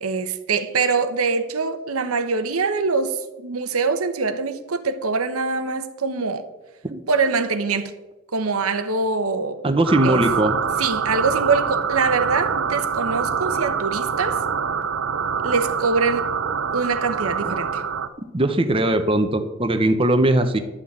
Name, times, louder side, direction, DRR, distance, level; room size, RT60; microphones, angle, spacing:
voice 1, 0.0-6.4 7.1-7.9 8.3-9.6 10.0-10.2 10.8-14.4 15.4-16.3 16.7-17.8, right 4 dB, 85° right, 1.0 m, -23 dB
voice 2, 9.6-10.5 18.3-20.6, right 1 dB, 25° right, 0.9 m, -19 dB
sound 1, 9.9-18.1, right 6 dB, 65° right, 0.7 m, -25 dB
11.5 x 6.0 x 8.7 m
head